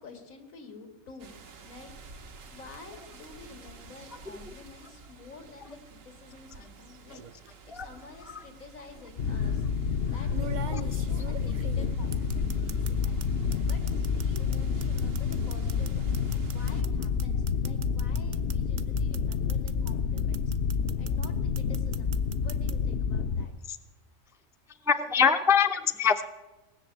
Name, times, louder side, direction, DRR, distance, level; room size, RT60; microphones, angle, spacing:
voice 1, 0.0-1.3 1.6-1.9 2.5-7.2 7.6-9.6 10.1-13.2 13.6-20.4 21.0-23.5, left 4 dB, 90° left, 6 dB, 2.3 m, -49 dB
sound 1, 1.2-16.8, right 4 dB, 75° right, 1.5 m, -51 dB
sound 2, 7.1-7.5 8.7-8.8 10.3-13.3 13.5-19.9 20.2-21.3 21.6-22.7, right 8 dB, 50° right, 0.5 m, -42 dB
sound 3, 9.2-23.4, left 6 dB, 60° left, 0.8 m, -29 dB
voice 2, 24.9-26.2, left 7 dB, 5° right, 8 dB, 0.3 m, -24 dB
18.5 x 6.9 x 8.7 m, 1.1 s
omnidirectional pair, 1.4 m